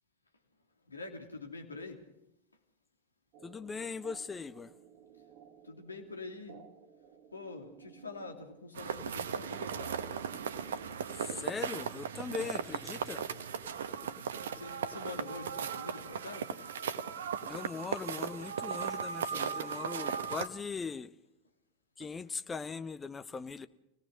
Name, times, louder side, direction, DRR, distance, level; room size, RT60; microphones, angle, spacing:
voice 1, 0.9-2.0 5.6-6.6 7.3-10.0 14.5-16.5 22.0-22.1, left 3 dB, 80° left, 2.9 m, -45 dB
sound 1, 3.3-8.9, right 8 dB, 40° right, 2.0 m, -57 dB
voice 2, 3.4-4.7 11.1-13.2 17.4-21.1 22.0-23.7, left 5 dB, 15° left, 0.8 m, -40 dB
sound 2, 8.7-20.5, right 7 dB, 60° right, 1.1 m, -37 dB
25.5 x 18.0 x 6.4 m
figure-of-eight pair, 90°, 0 cm